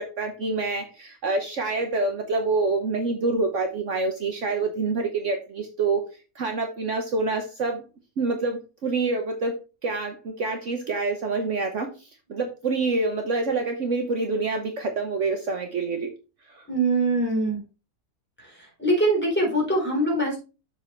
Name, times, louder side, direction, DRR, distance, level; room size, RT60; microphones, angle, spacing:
voice 1, 0.0-6.1 6.3-7.8 8.2-16.1 16.5-16.6, right 3 dB, 60° right, 4 dB, 1.3 m, -27 dB
voice 2, 16.7-17.6 18.8-20.4, right 1 dB, 5° left, -3 dB, 3.7 m, -22 dB
7.4 x 6.0 x 3.2 m, 0.30 s
omnidirectional pair, 1.5 m